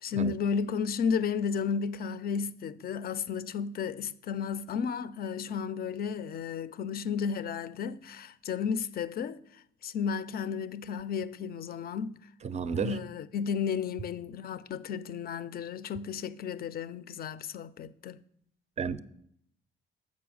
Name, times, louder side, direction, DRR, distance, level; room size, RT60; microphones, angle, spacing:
voice 1, 0.0-9.4 9.8-12.2 12.7-18.2, left 6 dB, 50° left, 0.4 m, -33 dB
voice 2, 12.4-13.0 18.8-19.0, right 6 dB, 35° right, 0.4 m, -32 dB
7.0 x 5.3 x 6.2 m
cardioid pair, 90°, 20 cm